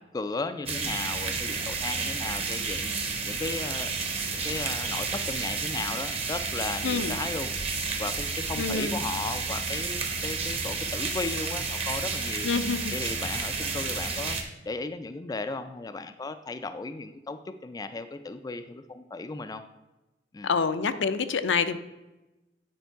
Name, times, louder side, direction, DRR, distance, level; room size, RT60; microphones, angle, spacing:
voice 1, 0.1-2.9 3.2-3.9 4.3-7.5 8.0-12.5 12.9-14.4 14.7-19.6 20.3-20.5, left 3 dB, 20° left, 9 dB, 0.3 m, -35 dB
sound 1, 0.7-14.4, right 4 dB, 35° right, 1.0 m, -31 dB
voice 2, 6.8-7.2 8.6-8.9 12.4-12.9 20.4-21.8, left 5 dB, 75° left, 10 dB, 0.5 m, -27 dB
9.3 x 4.6 x 4.5 m, 1.0 s
head